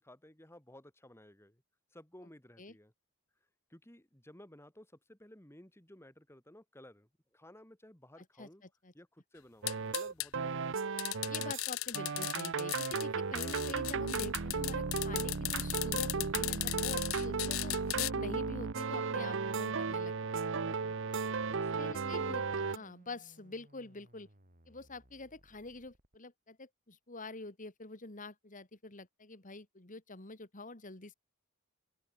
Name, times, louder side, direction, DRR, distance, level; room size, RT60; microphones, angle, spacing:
voice 1, 0.0-1.6 1.9-2.9 3.7-8.6 8.9-11.0 17.1-17.4 21.5-22.9, left 1 dB, 10° left, 4.0 m, -56 dB
sound 1, 9.6-11.7 11.9-22.8, right 4 dB, 60° right, 0.8 m, -35 dB
sound 2, 9.7-10.3 11.0-13.0 13.4-18.1, left 19 dB, 70° left, 0.5 m, -36 dB
voice 2, 11.2-21.0 21.8-24.3 24.7-31.1, left 2 dB, 40° left, 2.5 m, -46 dB
sound 3, 19.2-26.2, right 1 dB, 40° right, 4.9 m, -64 dB
open air
head